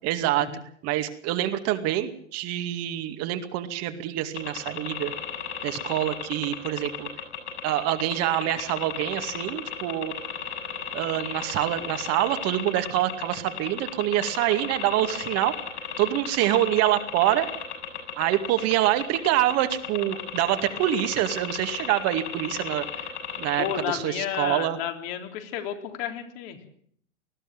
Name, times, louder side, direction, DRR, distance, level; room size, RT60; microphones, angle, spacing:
voice 1, 0.0-0.5 0.8-5.1 5.6-7.1 7.6-10.1 10.9-15.5 16.0-17.5 18.2-22.8 23.4-24.8, right 14 dB, 45° right, 8 dB, 2.3 m, -26 dB
sound 1, 4.4-23.8, left 8 dB, 70° left, 7.2 m, -34 dB
voice 2, 23.6-26.6, left 10 dB, 50° left, 5 dB, 3.7 m, -32 dB
20.0 x 14.5 x 9.0 m, 0.62 s
hypercardioid pair, 100°, 36 cm